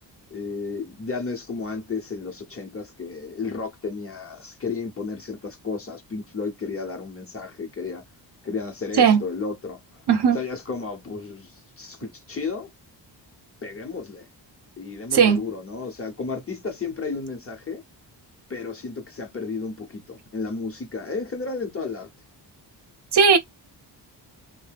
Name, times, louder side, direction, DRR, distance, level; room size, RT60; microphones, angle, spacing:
voice 1, 0.3-8.0 8.4-10.0 10.3-12.7 13.6-14.3 14.8-17.8 18.5-22.1, left 4 dB, 30° left, 0.9 m, -33 dB
voice 2, 9.0-9.2 10.1-10.4 15.1-15.4 23.1-23.4, right 6 dB, 65° right, 0.8 m, -16 dB
2.7 x 2.1 x 3.3 m
cardioid pair, 85°, 44 cm